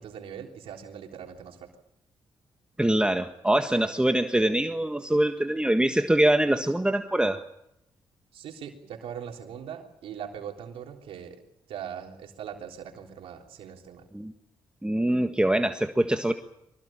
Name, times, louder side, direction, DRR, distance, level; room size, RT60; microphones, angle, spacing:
voice 1, 0.0-1.7 8.3-11.4 11.7-14.1, right 8 dB, 80° right, 2 dB, 3.5 m, -40 dB
voice 2, 2.8-7.4 14.1-14.3 14.8-16.3, right 1 dB, 10° right, 6 dB, 1.6 m, -24 dB
24.5 x 18.5 x 8.9 m, 0.82 s
supercardioid pair, 50°, 9 cm